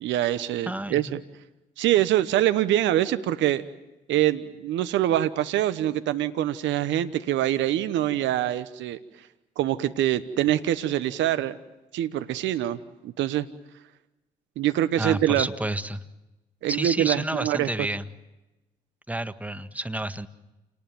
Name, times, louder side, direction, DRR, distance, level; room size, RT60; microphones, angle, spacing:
voice 1, 0.0-1.2 1.8-3.6 4.1-9.0 9.6-11.6 11.9-13.5 14.6-15.5 16.6-17.7, right 12 dB, 75° right, 13 dB, 1.1 m, -24 dB
voice 2, 0.7-1.2 15.0-16.0 16.7-18.1 19.1-20.3, right 1 dB, 10° right, 10 dB, 1.7 m, -30 dB
28.5 x 19.0 x 9.2 m, 1.0 s
hypercardioid pair, 45°, 20 cm